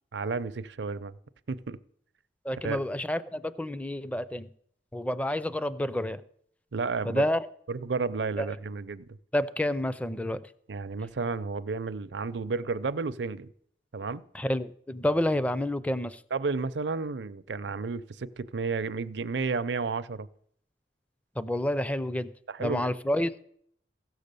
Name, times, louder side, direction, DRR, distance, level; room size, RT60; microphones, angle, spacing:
voice 1, 0.1-1.1 1.5-1.8 2.6-2.8 6.7-7.2 7.7-9.2 10.7-13.5 13.9-14.3 16.3-20.3 22.5-22.9, right 4 dB, 75° right, 0.5 m, -32 dB
voice 2, 2.4-4.5 4.9-6.2 7.0-7.5 8.4-8.5 9.3-10.4 14.3-16.2 21.4-22.3 22.6-23.3, left 1 dB, 10° left, 0.4 m, -29 dB
15.5 x 6.4 x 6.8 m
head